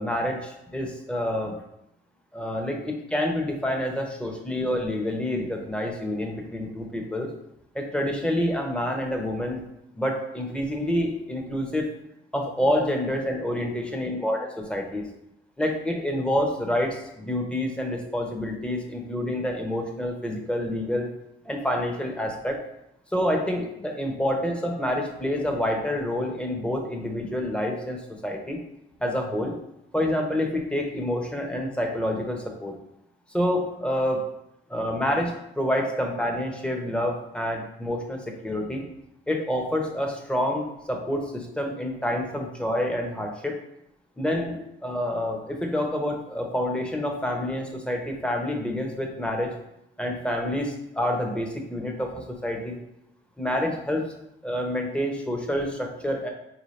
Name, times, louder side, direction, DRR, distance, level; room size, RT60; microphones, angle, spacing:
voice 1, 0.0-1.5 2.3-7.3 7.7-9.6 10.0-11.9 12.3-14.4 14.7-15.0 15.6-21.1 21.4-22.6 23.1-28.6 29.0-29.5 29.9-32.7 33.3-34.2 34.7-38.8 39.3-43.5 44.2-49.5 50.0-52.8 53.4-54.0 54.4-56.3, left 1 dB, 5° left, 1 dB, 0.8 m, -28 dB
4.4 x 2.8 x 3.1 m, 0.82 s
cardioid pair, 90°, 20 cm